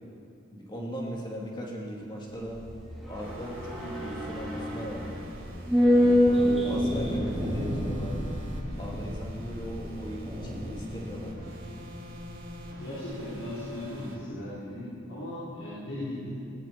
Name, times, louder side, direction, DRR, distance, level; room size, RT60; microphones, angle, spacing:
voice 1, 0.5-2.6 3.1-5.2 5.8-8.2 8.8-11.6, equal, 25° left, -3 dB, 2.6 m, -38 dB
sound 1, 2.3-12.8 13.0-13.1, equal, ahead, 3.6 m, -28 dB
sound 2, 3.1-14.2, equal, 85° right, 3.3 m, -44 dB
voice 2, 12.6-16.3, left 1 dB, 75° left, -11 dB, 4.0 m, -38 dB
19.5 x 16.0 x 4.5 m, 2.6 s
head